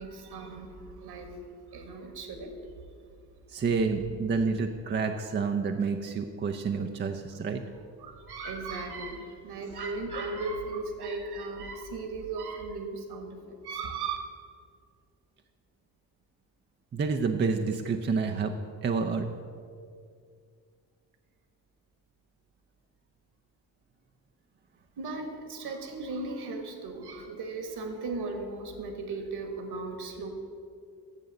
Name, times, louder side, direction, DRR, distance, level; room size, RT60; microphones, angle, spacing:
voice 1, 0.0-1.4 1.7-2.6 8.0-14.2 25.0-30.3, right 3 dB, 50° right, 6 dB, 1.5 m, -37 dB
voice 2, 3.5-7.7 9.6-9.7 16.9-18.5 18.8-19.3, right 5 dB, 20° right, 5 dB, 0.6 m, -29 dB
7.3 x 6.7 x 8.0 m, 2.3 s
figure-of-eight pair, 45°, 49 cm